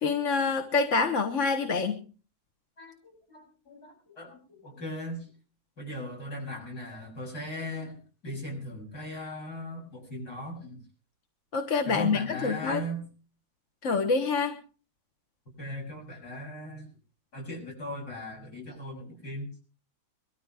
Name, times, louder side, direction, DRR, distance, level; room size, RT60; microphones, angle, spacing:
voice 1, 0.0-2.0 11.5-12.8 13.8-14.6, left 4 dB, 50° left, 6 dB, 1.5 m, -26 dB
voice 2, 2.8-5.3 5.8-10.8 11.8-13.1 15.6-16.9 17.3-19.5, equal, 65° left, -1 dB, 8.3 m, -38 dB
22.5 x 13.5 x 3.5 m, 0.37 s
omnidirectional pair, 1.8 m